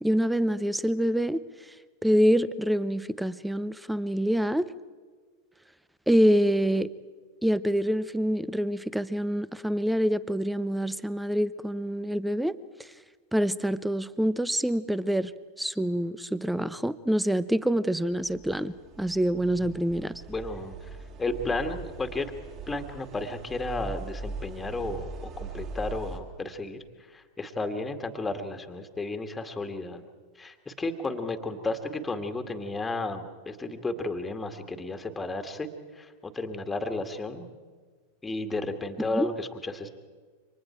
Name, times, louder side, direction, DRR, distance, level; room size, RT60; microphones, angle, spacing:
voice 1, 0.0-1.4 2.0-4.6 6.1-6.9 7.4-12.9 13.3-15.3 15.6-20.1 39.1-39.3, equal, 5° right, 0.8 m, -26 dB
sound 1, 18.1-26.2, right 3 dB, 35° right, 4.2 m, -41 dB
voice 2, 20.3-22.3 22.7-26.8 27.1-30.0 30.4-37.4 38.2-39.9, left 2 dB, 10° left, 2.1 m, -33 dB
29.0 x 25.5 x 4.6 m
figure-of-eight pair, 90°, 0 cm